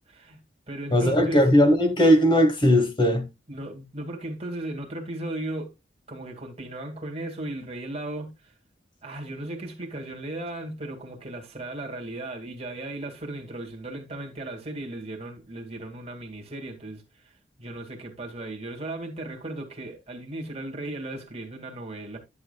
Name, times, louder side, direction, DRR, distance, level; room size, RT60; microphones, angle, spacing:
voice 1, 0.1-0.4 0.7-1.5 3.5-5.7 6.1-8.5 9.0-17.3 17.6-22.2, right 1 dB, 30° right, 2.1 m, -36 dB
voice 2, 0.9-3.3, equal, 25° left, 1.2 m, -19 dB
11.0 x 7.2 x 2.3 m
head